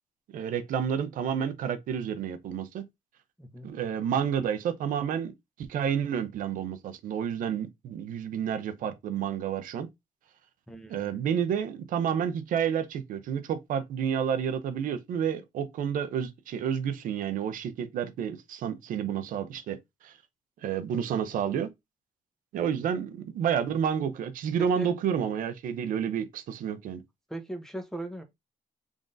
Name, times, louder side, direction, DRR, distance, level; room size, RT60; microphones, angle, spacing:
voice 1, 0.3-2.8 3.6-5.3 5.6-9.9 10.9-19.8 20.0-20.1 20.6-21.7 22.5-27.0, right 8 dB, 85° right, 0.6 m, -30 dB
voice 2, 3.4-3.8 10.7-11.2 24.6-24.9 27.3-28.2, right 1 dB, 5° left, 0.7 m, -39 dB
3.8 x 3.6 x 2.5 m
cardioid pair, 135°, 14 cm